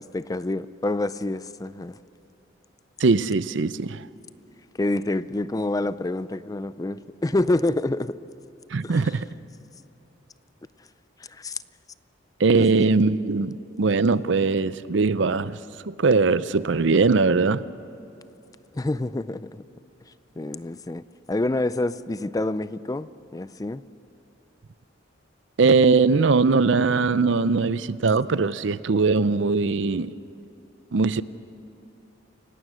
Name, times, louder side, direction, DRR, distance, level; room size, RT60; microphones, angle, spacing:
voice 1, 0.0-1.9 4.8-8.2 8.8-9.2 11.3-11.6 12.6-12.9 18.7-19.6 20.4-21.0 21.3-23.8, left 2 dB, 20° left, 0.4 m, -27 dB
voice 2, 3.0-4.0 8.7-9.3 12.4-15.6 15.9-17.6 25.6-30.1 30.9-31.2, right 4 dB, 65° right, 0.6 m, -21 dB
29.0 x 17.5 x 6.3 m
head